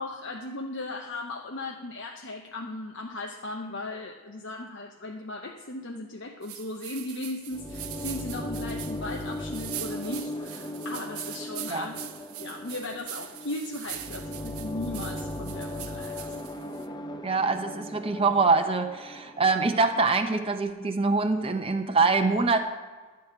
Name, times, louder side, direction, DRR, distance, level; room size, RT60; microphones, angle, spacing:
voice 1, 0.0-12.0 12.4-16.5, left 2 dB, 55° left, 2 dB, 0.8 m, -37 dB
sound 1, 6.4-16.9, right 13 dB, 85° right, 0.7 m, -42 dB
sound 2, 7.5-20.1, left 1 dB, 20° left, 0.5 m, -38 dB
voice 2, 17.2-22.7, right 4 dB, 25° right, 6 dB, 0.7 m, -24 dB
11.5 x 4.6 x 8.3 m, 1.4 s
head